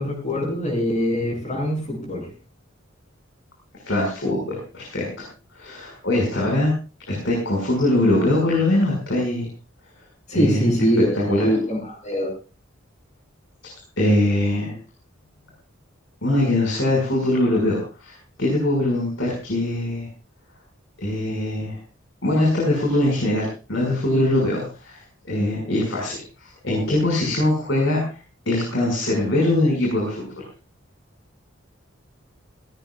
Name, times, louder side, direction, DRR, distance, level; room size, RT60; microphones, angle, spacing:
voice 1, 0.0-2.3 10.3-12.3, equal, 35° left, 1 dB, 7.6 m, -23 dB
voice 2, 3.8-5.2 5.5-6.7 7.1-9.5 10.3-10.7 11.1-11.5 14.0-14.8 16.2-20.1 21.0-21.8 22.2-28.0 28.5-30.4, left 1 dB, 65° left, -2 dB, 6.0 m, -22 dB
18.0 x 17.5 x 2.5 m, 0.34 s
head